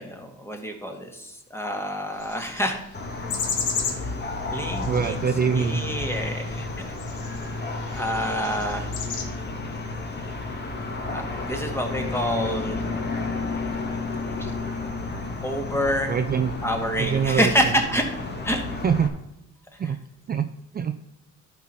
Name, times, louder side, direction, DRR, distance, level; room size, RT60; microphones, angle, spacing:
voice 1, 0.0-2.8 3.8-4.2 4.5-5.2 5.5-6.8 7.9-8.9 11.1-12.9 14.4-14.5 15.4-16.2 16.6-18.1 18.4-18.6 19.8-19.9, equal, 10° left, 3 dB, 1.9 m, -27 dB
sound 1, 2.2-9.2, left 6 dB, 80° left, 1.7 m, -35 dB
sound 2, 2.9-19.1, left 3 dB, 35° left, 1.6 m, -32 dB
voice 2, 4.9-5.8 16.1-16.5 17.0-17.7 18.8-19.1 19.8-20.0 20.3-20.5 20.7-20.9, right 6 dB, 30° right, 9 dB, 0.5 m, -24 dB
11.0 x 4.6 x 5.6 m, 0.88 s
cardioid pair, 90°, 30 cm